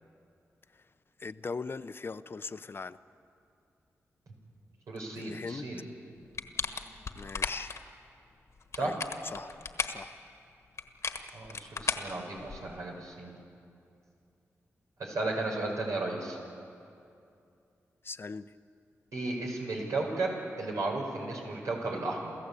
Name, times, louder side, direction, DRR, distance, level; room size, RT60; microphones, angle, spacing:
voice 1, 1.2-3.0 5.2-5.7 7.2-7.7 8.8-9.0 9.3-9.5 9.9-10.1 18.0-18.5, left 4 dB, 45° left, 13 dB, 0.7 m, -39 dB
voice 2, 4.9-5.8 8.8-9.0 11.3-13.3 15.0-16.4 19.1-22.4, right 2 dB, 85° right, -1 dB, 5.2 m, -34 dB
sound 1, 6.3-7.8 8.6-10.0 10.8-12.8, left 5 dB, 65° left, 1.4 m, -35 dB
28.5 x 14.5 x 8.4 m, 2.5 s
cardioid pair, 70°, 5 cm